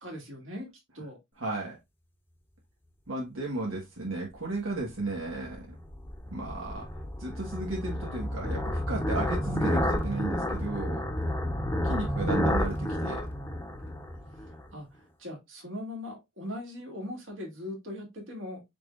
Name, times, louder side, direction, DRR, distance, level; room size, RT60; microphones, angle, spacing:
voice 1, 0.0-0.7 0.9-1.2 14.7-18.6, left 1 dB, 65° right, 2.3 m, -40 dB
voice 2, 1.4-1.8 3.1-5.7 6.3-6.9 7.2-11.0 11.8-13.3, right 2 dB, 90° right, 1.4 m, -34 dB
sound 1, 5.1-14.6, left 1 dB, 10° left, 0.8 m, -31 dB
5.8 x 3.7 x 2.4 m
head